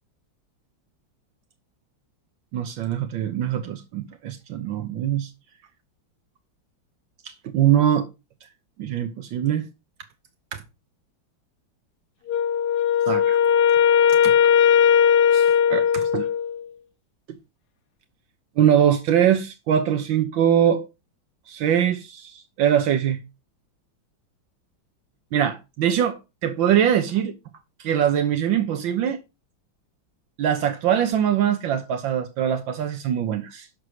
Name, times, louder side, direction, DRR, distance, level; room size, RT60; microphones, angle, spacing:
voice 1, 2.5-5.3 7.2-8.1 8.8-9.7 10.5-10.6 13.1-13.4 14.2-14.3 15.3-16.3 18.6-20.9 21.5-23.2 25.3-27.3 27.8-29.2 30.4-33.7, right 9 dB, 80° right, 1.6 m, -22 dB
Wind instrument woodwind instrument, 12.3-16.6, left 8 dB, 55° left, 1.7 m, -18 dB
11.0 x 4.7 x 6.3 m
omnidirectional pair, 2.1 m